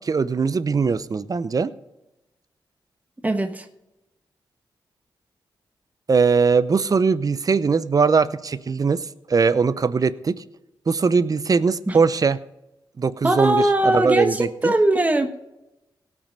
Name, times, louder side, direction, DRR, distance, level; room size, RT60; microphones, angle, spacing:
voice 1, 0.0-1.7 6.1-9.0 9.3-10.4 10.9-12.4 13.0-14.7, right 5 dB, 45° right, 15 dB, 0.7 m, -20 dB
voice 2, 3.2-3.7 11.9-12.0 13.2-15.4, right 1 dB, 20° right, 6 dB, 1.2 m, -20 dB
17.5 x 6.1 x 5.3 m, 0.95 s
cardioid pair, 60°, 9 cm